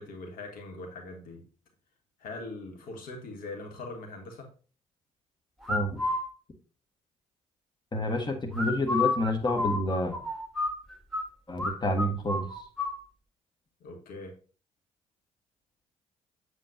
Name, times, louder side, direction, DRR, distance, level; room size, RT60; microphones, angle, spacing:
voice 1, 0.0-1.4 2.2-4.5 13.8-14.4, left 2 dB, 60° left, 3 dB, 1.4 m, -41 dB
sound 1, 5.6-6.2 8.5-11.2 11.6-11.7 12.0-13.0, left 3 dB, ahead, 2.2 m, -30 dB
voice 2, 5.7-6.0 7.9-10.2 11.5-12.5, left 1 dB, 25° left, 4 dB, 1.4 m, -28 dB
7.5 x 6.5 x 2.7 m, 0.38 s
figure-of-eight pair, 45°, 17 cm